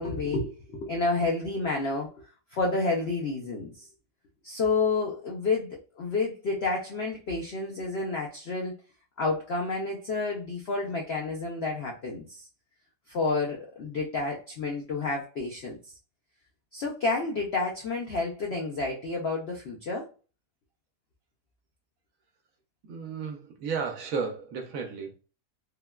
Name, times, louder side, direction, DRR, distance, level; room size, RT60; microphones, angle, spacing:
voice 1, 0.0-3.9 4.4-8.7 9.2-12.5 13.1-15.8 16.7-20.1, left 3 dB, 70° left, -1 dB, 0.6 m, -30 dB
voice 2, 22.9-25.1, right 5 dB, 65° right, 3 dB, 0.9 m, -33 dB
3.6 x 2.1 x 2.2 m, 0.35 s
omnidirectional pair, 1.7 m